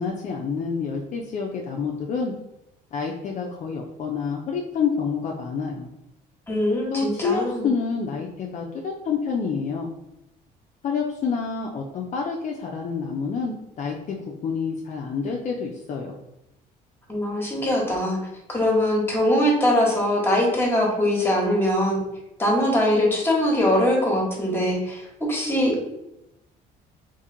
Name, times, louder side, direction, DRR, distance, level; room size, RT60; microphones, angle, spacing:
voice 1, 0.0-2.3 2.9-5.9 6.9-9.9 10.8-14.2 14.4-16.2, left 5 dB, 45° left, 0 dB, 0.5 m, -28 dB
voice 2, 6.5-7.7 17.1-18.2 18.5-22.0 22.4-25.8, left 1 dB, 15° left, -1 dB, 1.1 m, -22 dB
2.9 x 2.6 x 3.7 m, 0.88 s
cardioid pair, 110°, 17 cm